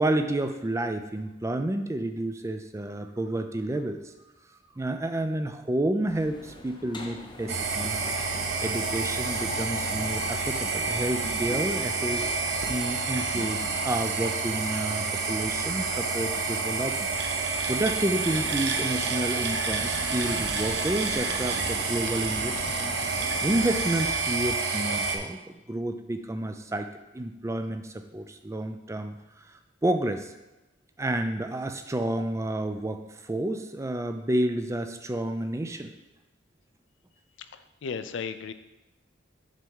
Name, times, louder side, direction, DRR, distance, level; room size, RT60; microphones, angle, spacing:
voice 1, 0.0-4.1 4.8-8.0 8.6-17.1 17.4-22.7 23.4-25.4 25.7-26.9 27.1-29.2 29.5-30.3 31.0-35.9, right 1 dB, 15° right, 7 dB, 0.4 m, -30 dB
sound 1, 6.1-23.7, left 1 dB, 25° left, 0.6 m, -44 dB
sound 2, 7.5-25.2, right 4 dB, 60° right, 0.7 m, -29 dB
voice 2, 37.5-38.5, left 5 dB, 70° left, 11 dB, 0.4 m, -35 dB
7.4 x 3.5 x 5.4 m, 0.99 s
head